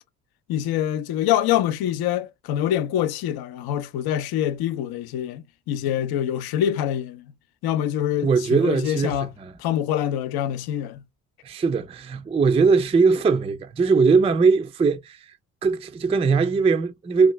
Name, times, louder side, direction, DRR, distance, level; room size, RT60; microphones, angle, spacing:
voice 1, 0.5-7.3 7.6-9.3 9.6-11.0, left 11 dB, 60° left, 0.6 m, -25 dB
voice 2, 8.2-9.5 11.4-15.3 15.6-17.3, right 4 dB, 15° right, 0.4 m, -20 dB
2.9 x 2.3 x 3.0 m
hypercardioid pair, 50°, 42 cm